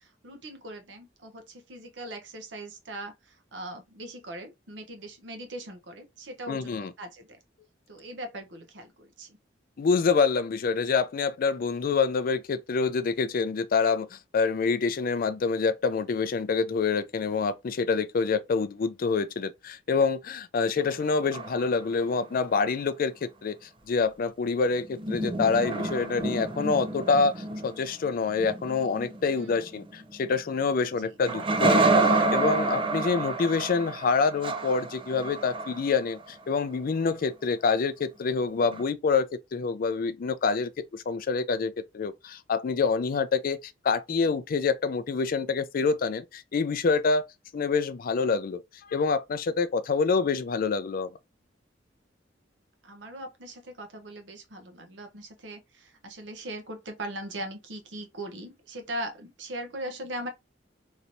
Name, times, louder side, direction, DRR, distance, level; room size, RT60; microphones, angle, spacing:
voice 1, 0.0-7.4 7.9-9.4 20.6-20.7 29.3-29.8 30.9-31.2 52.8-60.3, right 1 dB, 75° right, 0.9 m, -40 dB
voice 2, 6.5-6.9 9.8-23.5 23.9-47.3 47.5-51.1, left 4 dB, 50° left, 0.4 m, -26 dB
sound 1, 20.8-22.1 24.8-30.7 31.3-36.3 38.7-38.8, right 2 dB, 30° right, 0.5 m, -28 dB
3.1 x 2.8 x 2.6 m
head